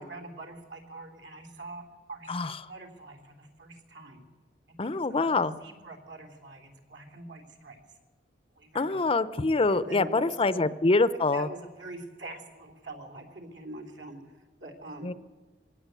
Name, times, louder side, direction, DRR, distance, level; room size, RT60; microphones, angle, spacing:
voice 1, 0.0-4.2 4.8-7.8 8.6-9.0 9.7-10.7 11.3-15.1, right 2 dB, 70° right, 4 dB, 3.5 m, -44 dB
voice 2, 4.8-5.6 8.7-11.5 15.0-15.1, left 3 dB, 30° left, 15 dB, 0.6 m, -25 dB
22.0 x 17.5 x 8.2 m, 1.3 s
head